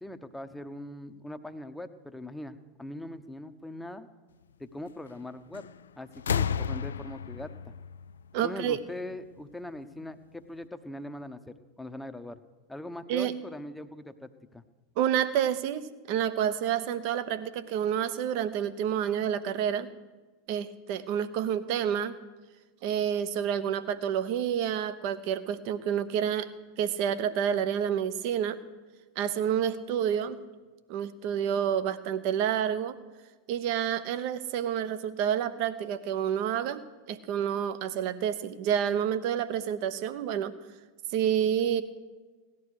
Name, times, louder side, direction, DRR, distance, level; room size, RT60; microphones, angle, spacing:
voice 1, 0.0-4.1 4.6-5.7 6.0-7.7 8.4-12.4 12.7-14.6, left 1 dB, 5° left, 9 dB, 0.9 m, -41 dB
sound 1, 5.5-5.8 6.1-8.9 10.0-10.1, left 7 dB, 75° left, 0.4 m, -32 dB
voice 2, 8.3-8.8 13.1-13.3 15.0-19.9 20.5-22.2 22.8-26.5 26.8-28.6 29.2-30.4 30.9-33.0 33.5-36.8 37.1-40.5 41.1-41.8, right 9 dB, 55° right, 13 dB, 1.0 m, -29 dB
17.5 x 11.5 x 4.9 m, 1.3 s
figure-of-eight pair, 85°, 0 cm